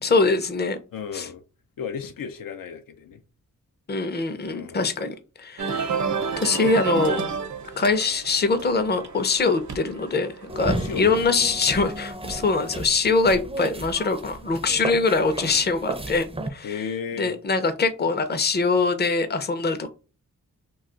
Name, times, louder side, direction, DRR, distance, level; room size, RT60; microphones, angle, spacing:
voice 1, 0.0-0.8 1.1-1.3 3.9-5.9 6.4-7.2 7.8-16.2 16.5-16.8 17.2-19.9, left 4 dB, 30° left, 0.5 m, -23 dB
voice 2, 0.9-1.4 1.8-3.2 4.5-4.8 10.7-11.1 16.6-17.3, left 7 dB, 85° left, 0.5 m, -34 dB
sound 1, 5.6-11.9, right 5 dB, 60° right, 0.6 m, -31 dB
sound 2, 10.5-16.5, right 1 dB, 20° right, 0.5 m, -33 dB
2.3 x 2.3 x 3.8 m
wide cardioid pair, 65°, 33 cm